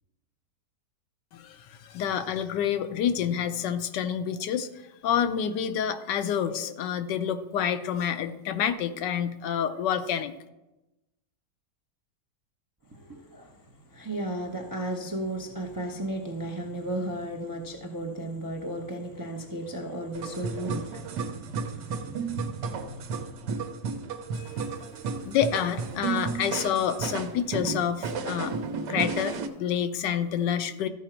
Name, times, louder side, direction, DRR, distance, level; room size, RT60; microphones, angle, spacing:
voice 1, 1.3-4.7 5.0-10.3 24.3-24.5 25.2-28.6 28.9-30.9, left 8 dB, 80° left, 1.3 m, -28 dB
voice 2, 12.9-23.7, right 1 dB, 30° right, 0.3 m, -35 dB
sound 1, 20.1-29.5, right 5 dB, 90° right, 1.4 m, -33 dB
13.5 x 4.9 x 4.4 m
omnidirectional pair, 1.9 m